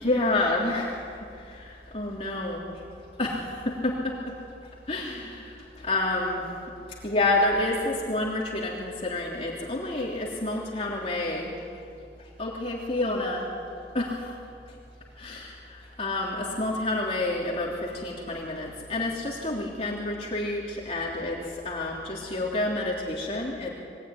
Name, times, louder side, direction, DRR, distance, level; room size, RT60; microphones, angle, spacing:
voice 1, 0.0-2.9 3.2-6.5 6.9-11.9 12.2-13.5 13.9-14.4 14.6-14.8 15.1-23.7, left 2 dB, 35° left, -3 dB, 3.3 m, -29 dB
27.5 x 22.0 x 9.8 m, 2.5 s
head